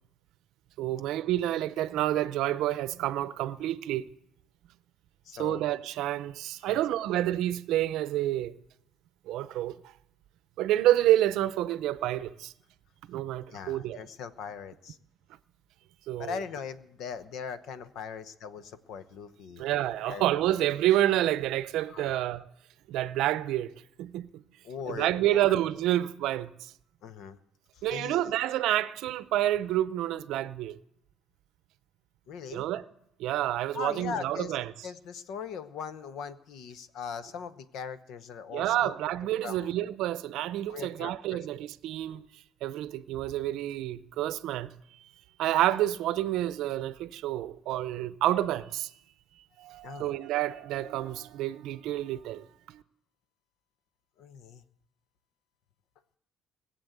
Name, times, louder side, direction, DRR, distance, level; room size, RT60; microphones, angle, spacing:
voice 1, 0.8-4.1 5.4-8.5 9.3-9.8 10.6-12.5 13.1-14.0 16.1-16.4 19.6-22.4 22.9-23.7 24.0-24.4 24.9-26.7 27.8-30.8 32.5-32.8 33.2-34.6 38.5-42.2 42.6-44.7 45.4-48.9 49.6-52.8, right 13 dB, 70° right, 0.6 m, -28 dB
voice 2, 5.2-5.6 6.7-6.8 13.5-15.0 16.2-19.7 20.1-20.3 21.9-22.2 24.6-25.6 27.0-27.4 27.7-28.2 32.3-32.7 33.7-34.6 34.8-38.9 39.4-39.7 40.7-41.4 49.8-50.1 54.2-54.6, left 6 dB, 60° left, 0.9 m, -40 dB
19.5 x 7.9 x 8.0 m
cardioid pair, 155°, 0 cm